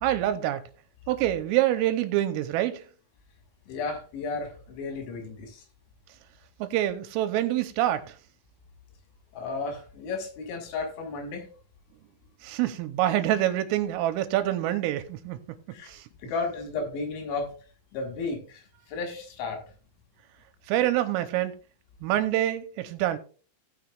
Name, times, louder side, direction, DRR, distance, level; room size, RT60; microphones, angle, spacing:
voice 1, 0.0-0.6 1.1-2.8 6.6-8.1 12.4-15.4 15.9-16.0 20.7-21.5 22.0-23.2, right 13 dB, 90° right, 3.3 m, -26 dB
voice 2, 3.7-5.6 9.3-11.5 15.7-15.9 16.2-17.5 17.9-18.6 18.9-19.6, left 4 dB, 70° left, 3.9 m, -33 dB
17.5 x 6.4 x 2.4 m
omnidirectional pair, 5.8 m